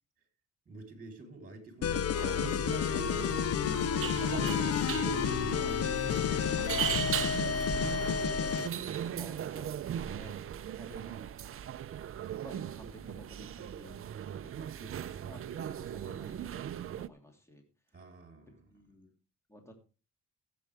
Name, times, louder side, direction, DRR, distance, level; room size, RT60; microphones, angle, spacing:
voice 1, 0.7-2.1 2.6-3.6 3.9-8.0 17.9-18.7, right 2 dB, 30° right, 4 dB, 3.9 m, -48 dB
sound 1, 1.8-8.7, left 8 dB, 55° left, 0.7 m, -30 dB
sound 2, 2.1-17.1, right 10 dB, 45° right, 0.6 m, -38 dB
voice 2, 9.1-10.4 10.7-11.3 12.3-14.1 14.4-16.5 16.9-17.6 18.7-19.1 19.5-19.7, equal, 10° left, 2 dB, 2.9 m, -53 dB
15.5 x 7.9 x 3.4 m, 0.34 s
cardioid pair, 90°, 30 cm